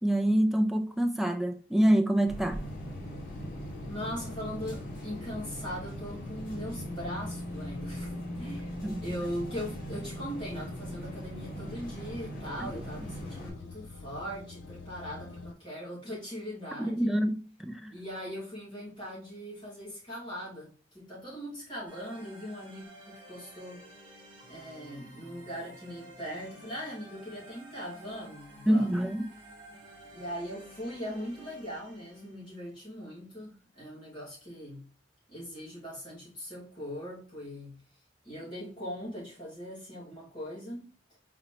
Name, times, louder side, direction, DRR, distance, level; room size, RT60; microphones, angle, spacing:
voice 1, 0.0-2.6 8.8-9.0 12.6-12.7 16.8-17.9 28.7-29.3, right 1 dB, ahead, 0.3 m, -26 dB
sound 1, 2.3-13.5, equal, 45° left, 1.8 m, -41 dB
sound 2, 2.6-15.5, left 2 dB, 70° left, 0.4 m, -44 dB
voice 2, 3.9-8.7 9.0-17.1 17.9-23.8 24.5-29.0 30.1-34.9 35.3-37.8 38.2-40.9, equal, 25° left, 2.2 m, -40 dB
sound 3, 21.9-32.6, right 1 dB, 25° right, 1.4 m, -52 dB
4.3 x 3.9 x 2.9 m
head